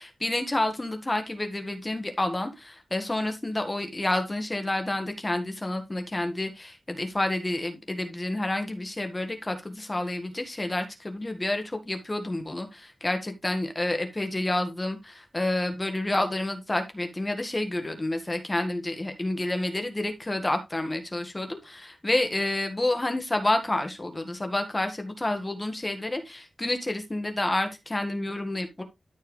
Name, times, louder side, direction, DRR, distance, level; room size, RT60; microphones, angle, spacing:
voice 1, 0.0-28.8, left 1 dB, 25° left, 6 dB, 1.7 m, -29 dB
13.0 x 4.6 x 3.4 m, 0.22 s
wide cardioid pair, 80°, 0 cm